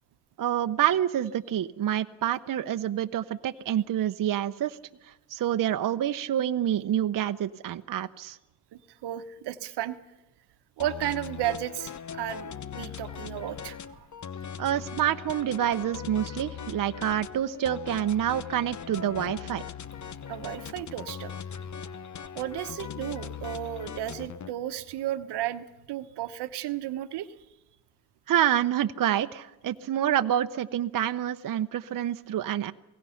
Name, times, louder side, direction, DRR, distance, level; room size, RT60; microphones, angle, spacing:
voice 1, 0.4-4.8 5.0-8.4 14.6-19.6 28.3-32.7, right 11 dB, 55° right, 9 dB, 0.8 m, -27 dB
voice 2, 8.7-10.0 10.8-14.1 20.3-21.4 22.3-27.3, right 13 dB, 85° right, 11 dB, 1.1 m, -34 dB
sound 1, 10.8-24.5, left 8 dB, 45° left, 0.9 m, -40 dB
28.0 x 17.5 x 5.7 m, 0.97 s
supercardioid pair, 60°, 40 cm